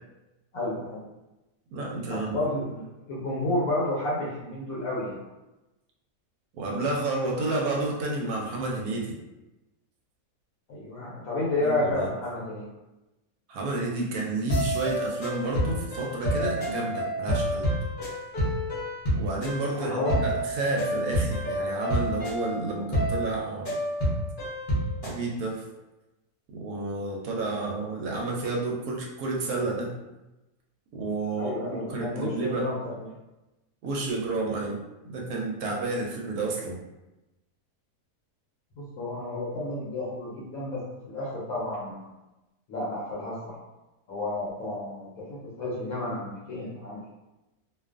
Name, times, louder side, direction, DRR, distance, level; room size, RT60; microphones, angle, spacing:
voice 1, 0.5-1.0 2.1-5.2 10.7-12.7 19.7-20.3 31.4-33.1 38.8-42.1 42.7-43.6 44.1-47.1, left 2 dB, 70° left, -6 dB, 1.0 m, -31 dB
voice 2, 1.7-2.5 6.5-9.2 11.6-12.1 13.5-17.7 19.1-23.7 25.0-25.6 26.5-30.0 30.9-32.7 33.8-34.8 35.1-36.8, right 2 dB, 75° right, -1 dB, 1.0 m, -30 dB
sound 1, 14.5-25.2, equal, 45° left, 0.8 m, -29 dB
2.5 x 2.4 x 2.4 m, 1.0 s
omnidirectional pair, 1.6 m